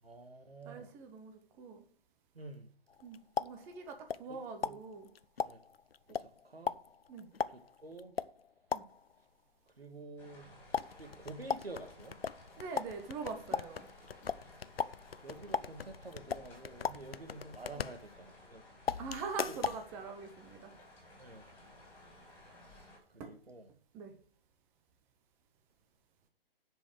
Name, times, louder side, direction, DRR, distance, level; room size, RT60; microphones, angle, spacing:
voice 1, 0.0-0.9 2.3-2.7 4.3-4.8 5.4-5.6 6.1-6.8 7.5-8.1 9.8-10.5 11.0-12.2 14.4-14.5 15.0-18.6 19.5-19.6 21.2-21.4 22.6-23.7, right 2 dB, 85° right, 1.7 m, -49 dB
voice 2, 0.7-1.8 3.0-5.1 7.1-7.3 8.7-8.9 12.6-13.9 17.7-17.8 19.0-20.7 23.2-23.4 23.9-24.1, right 5 dB, 10° right, 0.5 m, -43 dB
sound 1, 2.9-4.4 4.6-9.2 10.7-18.5 18.9-19.9, left 6 dB, 80° left, 0.6 m, -38 dB
sound 2, 10.2-23.0, left 1 dB, 10° left, 3.0 m, -57 dB
10.0 x 5.3 x 6.2 m
figure-of-eight pair, 135°, 29 cm